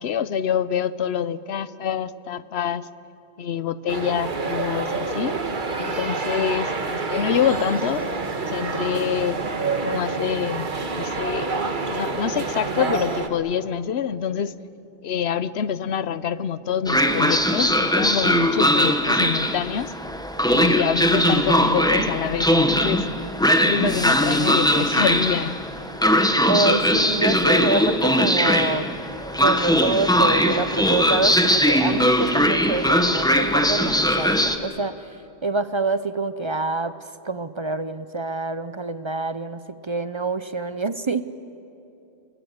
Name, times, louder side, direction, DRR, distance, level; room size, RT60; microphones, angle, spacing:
voice 1, 0.0-2.9 3.4-5.4 5.8-8.0 8.4-9.4 9.9-11.5 11.9-14.5 15.0-19.9 20.5-23.0 23.6-25.5, left 8 dB, 80° left, 16 dB, 1.0 m, -26 dB
sound 1, 3.9-13.3, right 4 dB, 50° right, 1.5 m, -27 dB
Train, 16.9-34.6, equal, 5° left, 1.0 m, -20 dB
voice 2, 26.4-28.9 29.4-35.1 35.4-41.2, right 3 dB, 35° right, 13 dB, 0.5 m, -26 dB
29.5 x 19.5 x 8.0 m, 2.8 s
omnidirectional pair, 1.1 m